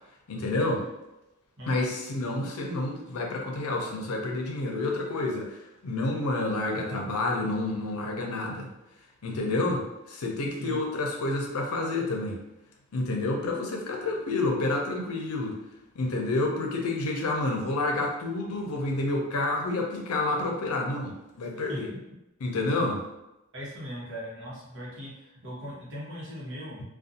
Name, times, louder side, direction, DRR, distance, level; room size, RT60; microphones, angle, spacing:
voice 1, 0.3-0.9 1.7-8.7 9.2-12.4 12.9-15.6 15.9-21.9 22.4-23.0, left 2 dB, 85° left, 0 dB, 0.6 m, -29 dB
voice 2, 1.6-1.9 10.6-10.9 21.7-22.0 23.5-26.8, equal, 60° right, -6 dB, 1.0 m, -39 dB
2.5 x 2.3 x 2.6 m, 0.95 s
head